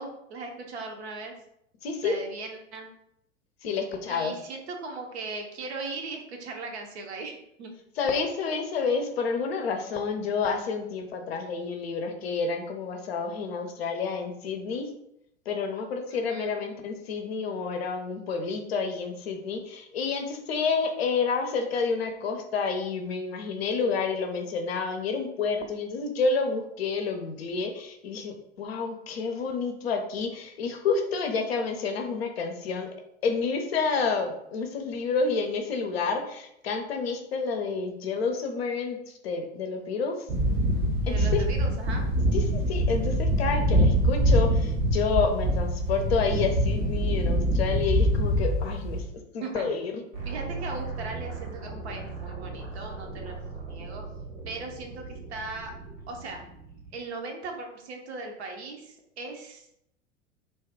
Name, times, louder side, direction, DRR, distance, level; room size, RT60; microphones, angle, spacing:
voice 1, 0.0-1.4 2.0-2.9 4.1-7.7 16.1-16.6 41.1-42.0 49.4-49.6 50.2-53.4 53.7-54.0 54.5-55.7 56.1-56.4 56.9-59.8, right 3 dB, 60° right, 2 dB, 0.8 m, -38 dB
voice 2, 1.8-2.2 3.6-4.3 8.0-14.9 15.5-32.9 33.2-40.2 41.1-41.4 42.3-49.0 49.3-50.0, left 5 dB, 55° left, 5 dB, 0.6 m, -29 dB
sound 1, 40.3-49.0, equal, 25° right, 0.5 m, -24 dB
sound 2, 50.1-57.0, right 4 dB, 80° right, 1.5 m, -39 dB
2.7 x 2.3 x 3.4 m, 0.78 s
figure-of-eight pair, 90°, 38 cm